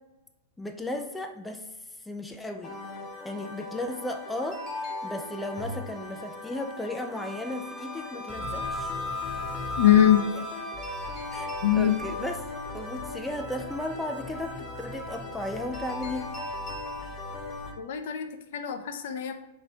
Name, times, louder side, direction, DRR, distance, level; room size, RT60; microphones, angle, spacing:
voice 1, 0.6-1.7 2.0-2.8 3.2-4.6 5.0-8.9 10.3-10.5 11.3-11.5 11.8-12.5 12.7-16.3, left 1 dB, 5° left, 5 dB, 0.4 m, -35 dB
sound 1, 2.6-17.7, left 2 dB, 30° left, 1.0 m, -38 dB
Wind instrument woodwind instrument, 7.2-12.4, left 2 dB, 15° right, 0.8 m, -37 dB
voice 2, 9.8-10.2 11.6-11.9 17.8-19.3, left 11 dB, 60° left, 7 dB, 0.5 m, -22 dB
3.8 x 3.1 x 4.4 m, 1.0 s
figure-of-eight pair, 105°, 0 cm